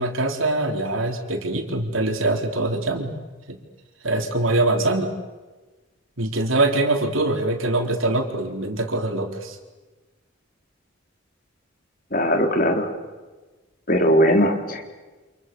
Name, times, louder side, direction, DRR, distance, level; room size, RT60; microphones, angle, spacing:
voice 1, 0.0-3.1 3.5-3.6 4.0-5.1 6.2-9.6 14.5-14.6, right 2 dB, 90° right, 4 dB, 3.9 m, -23 dB
voice 2, 12.1-12.9 13.9-14.9, equal, 45° left, 4 dB, 3.7 m, -19 dB
29.5 x 27.5 x 7.1 m, 1.2 s
head